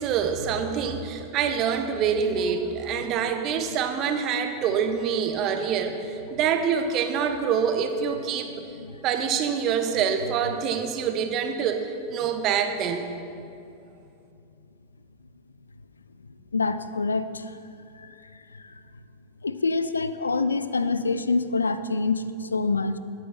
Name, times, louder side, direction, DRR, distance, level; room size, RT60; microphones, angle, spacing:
voice 1, 0.0-8.6 9.0-13.0, right 7 dB, 35° right, 6 dB, 1.2 m, -26 dB
voice 2, 16.5-17.5 18.0-18.1 18.6-18.7 19.4-23.0, left 3 dB, 75° left, 13 dB, 0.5 m, -26 dB
21.0 x 9.0 x 4.3 m, 2.6 s
figure-of-eight pair, 90°, 0 cm